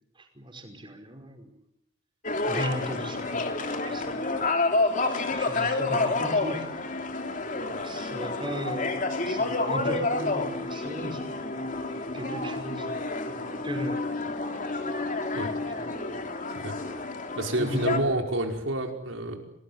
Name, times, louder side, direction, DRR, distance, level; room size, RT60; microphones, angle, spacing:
voice 1, 0.2-1.6 2.4-4.4 5.0-6.7 7.8-14.0 15.3-16.3 17.6-17.8, equal, 25° right, 5 dB, 5.2 m, -38 dB
sound 1, 2.2-18.0, left 3 dB, 40° left, 3.2 m, -29 dB
voice 2, 17.3-19.4, right 1 dB, 90° right, 3 dB, 5.2 m, -28 dB
28.5 x 20.0 x 9.7 m, 0.80 s
head